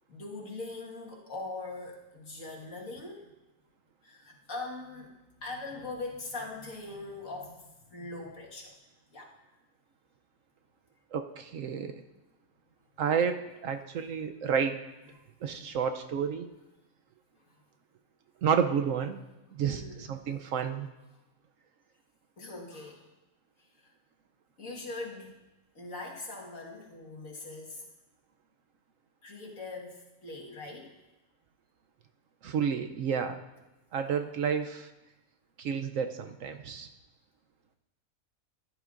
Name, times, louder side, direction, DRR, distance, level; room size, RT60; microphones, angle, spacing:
voice 1, 0.1-3.3 4.0-5.1 5.4-8.8 9.1-9.3 15.5-15.6 17.5-17.6 19.7-20.1 22.4-23.1 23.8-23.9 24.6-25.4 25.8-27.9 29.2-31.0, left 2 dB, 65° left, -2 dB, 2.1 m, -41 dB
voice 2, 11.1-12.0 13.0-14.8 15.4-16.5 18.4-19.2 19.5-20.9 32.4-33.4 33.9-34.9 35.6-36.9, right 7 dB, 70° right, 7 dB, 0.9 m, -30 dB
15.0 x 10.5 x 2.5 m, 1.0 s
omnidirectional pair, 1.5 m